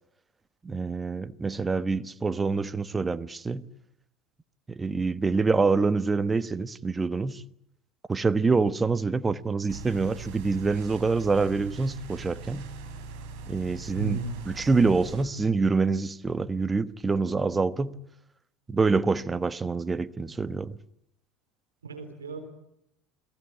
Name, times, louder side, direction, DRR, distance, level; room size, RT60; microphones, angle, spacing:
voice 1, 0.6-3.7 4.7-7.4 8.1-12.7 13.5-14.2 14.4-18.0 18.7-20.8, right 4 dB, 20° right, 1.2 m, -26 dB
sound 1, 9.7-15.2, right 4 dB, 60° right, 5.9 m, -41 dB
voice 2, 14.0-14.4 21.8-22.4, right 5 dB, 85° right, 3.8 m, -33 dB
29.5 x 21.0 x 8.5 m
figure-of-eight pair, 70°, 0 cm